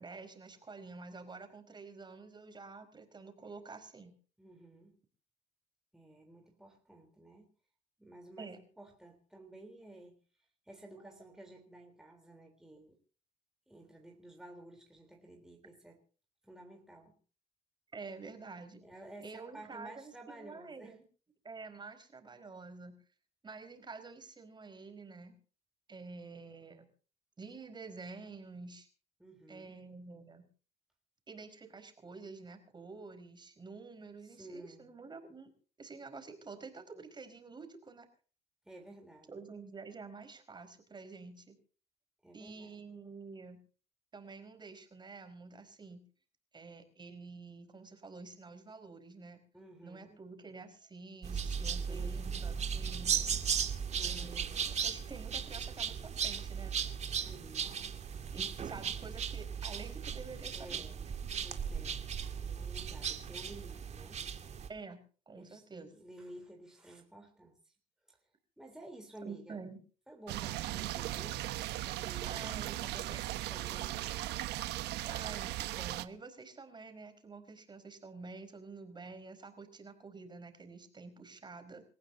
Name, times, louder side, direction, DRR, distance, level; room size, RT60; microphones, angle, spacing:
voice 1, 0.0-4.1 8.4-8.6 11.0-11.1 17.9-18.8 19.2-21.0 21.4-23.0 23.4-25.4 25.9-26.9 27.4-28.9 29.5-30.5 31.3-35.5 35.8-38.1 39.3-41.6 42.3-43.6 44.1-46.0 46.5-49.4 49.8-53.3 54.0-56.7 58.3-60.9 64.7-65.9 69.2-69.8 72.2-72.8 75.0-81.8, right 4 dB, 25° right, 7 dB, 4.7 m, -49 dB
voice 2, 4.4-5.0 5.9-7.5 8.0-10.2 10.7-13.0 13.7-16.0 16.4-17.1 18.8-21.0 29.2-29.8 34.2-34.9 38.7-39.3 42.2-42.7 49.5-50.2 51.9-52.3 53.9-54.4 57.3-57.8 60.5-61.0 61.4-64.2 65.4-67.7 68.1-68.2 68.6-69.6 70.1-71.5 71.8-72.4 72.8-74.2, right 1 dB, 5° right, 2 dB, 3.6 m, -53 dB
sound 1, 51.2-64.7, right 7 dB, 40° right, 2.4 m, -36 dB
sound 2, 70.3-76.1, right 15 dB, 80° right, 1.2 m, -38 dB
27.5 x 15.5 x 2.8 m, 0.39 s
cardioid pair, 110°, 17 cm